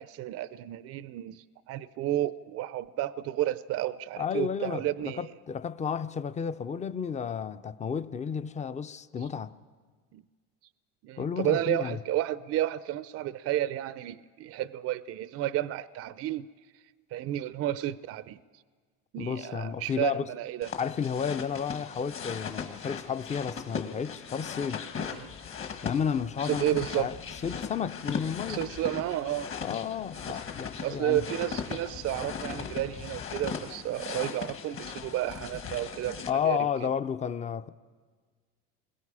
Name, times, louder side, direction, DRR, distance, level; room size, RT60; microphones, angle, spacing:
voice 1, 0.0-5.3 10.1-10.2 11.0-16.5 17.1-18.4 19.1-20.7 25.1-25.3 26.4-27.1 28.5-29.5 30.3-30.4 30.8-36.9, right 13 dB, 50° right, 0.6 m, -32 dB
voice 2, 4.2-9.5 11.2-12.0 19.2-20.2 20.8-24.9 25.8-26.7 27.0-27.1 27.4-28.7 29.6-31.2 36.3-37.7, left 7 dB, 20° left, 0.6 m, -32 dB
sound 1, 20.6-36.3, left 6 dB, 40° left, 1.7 m, -38 dB
28.5 x 21.5 x 4.9 m
supercardioid pair, 115°, 31 cm